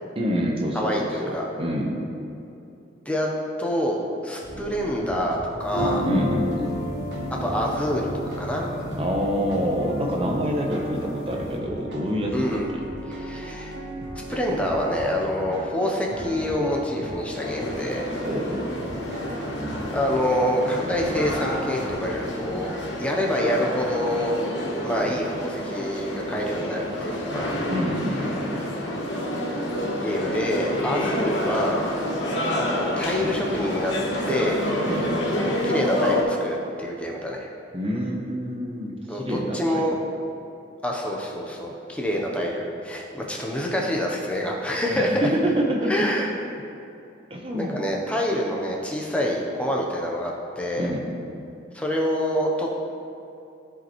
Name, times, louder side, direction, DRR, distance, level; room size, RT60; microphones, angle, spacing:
voice 1, 0.2-2.0 6.0-6.7 9.0-12.8 18.2-18.8 27.7-28.4 34.9-35.1 37.7-39.9 44.9-46.1 47.3-47.8 50.8-51.1, equal, 30° right, 0 dB, 0.9 m, -27 dB
voice 2, 0.7-1.5 3.1-3.3 3.6-6.1 7.4-8.7 12.3-12.7 13.1-13.7 14.3-18.1 19.9-22.7 23.0-24.3 24.8-27.5 30.0-31.8 32.5-33.9 34.3-34.6 35.4-37.5 39.1-40.0 40.8-45.3 45.9-46.3 47.5-50.9 51.7-52.8, equal, 5° left, -1 dB, 0.7 m, -26 dB
sound 1, 4.4-22.5, equal, 60° right, 1.4 m, -36 dB
sound 2, 5.6-11.5, equal, 50° left, 1.1 m, -32 dB
sound 3, 17.4-36.2, left 1 dB, 75° left, 1.2 m, -29 dB
13.5 x 5.2 x 3.1 m, 2.7 s
head